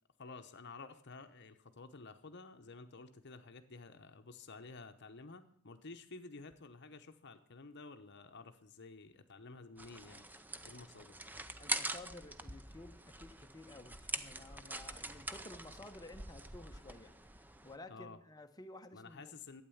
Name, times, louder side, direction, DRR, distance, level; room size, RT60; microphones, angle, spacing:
voice 1, 0.2-10.3 10.6-11.2 17.9-18.2 18.9-19.6, left 3 dB, 50° left, 8 dB, 0.9 m, -52 dB
sound 1, 9.8-17.8, right 2 dB, 10° right, 0.5 m, -44 dB
voice 2, 11.6-17.1 17.6-19.3, left 2 dB, 15° left, 7 dB, 0.8 m, -53 dB
12.0 x 8.7 x 7.1 m, 0.64 s
head